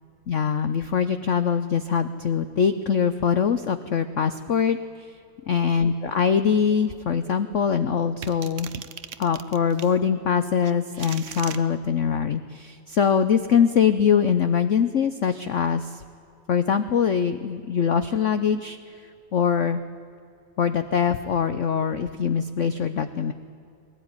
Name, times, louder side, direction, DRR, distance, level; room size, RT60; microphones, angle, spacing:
voice 1, 0.3-4.8 5.5-8.7 9.2-16.0 16.5-18.8 19.3-19.8 20.6-23.3, left 7 dB, 75° left, 11 dB, 0.6 m, -23 dB
sound 1, 8.2-10.0 10.6-11.6, right 9 dB, 60° right, 0.8 m, -38 dB
20.0 x 17.5 x 9.7 m, 2.5 s
omnidirectional pair, 2.3 m